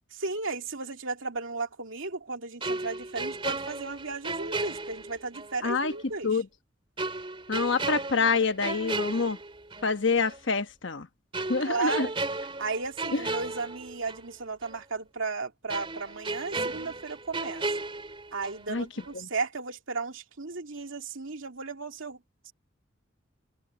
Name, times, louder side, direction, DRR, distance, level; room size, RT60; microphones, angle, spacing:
voice 1, 0.2-6.3 11.6-12.1 12.6-17.7 18.3-22.5, right 4 dB, 85° right, 2.4 m, -35 dB
sound 1, 2.6-5.6 5.9-6.0 7.0-9.9 10.3-10.5 11.3-14.3 14.6-14.8 15.7-18.7 19.0-19.2, right 3 dB, 25° right, 3.5 m, -34 dB
voice 2, 5.6-5.9 6.2-6.5 7.5-9.4 9.8-11.1 11.5-12.1 13.1-13.2 18.7-18.8 19.1-19.3, left 4 dB, 70° left, 1.1 m, -26 dB
head